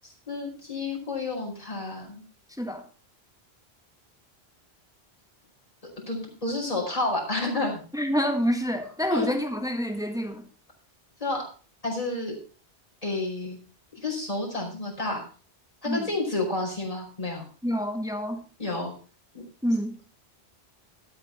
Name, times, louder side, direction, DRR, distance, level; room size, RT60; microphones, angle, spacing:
voice 1, 0.3-2.2 6.1-7.8 9.1-9.4 11.2-11.4 11.8-12.4 13.0-13.6 14.0-15.2 15.8-17.5 18.6-18.9 19.3-19.4, left 2 dB, 35° left, -2 dB, 4.6 m, -30 dB
voice 2, 7.9-10.5 15.8-16.1 17.6-18.4 19.6-20.0, equal, 5° right, 5 dB, 1.6 m, -27 dB
12.5 x 8.7 x 4.3 m, 0.38 s
omnidirectional pair, 1.1 m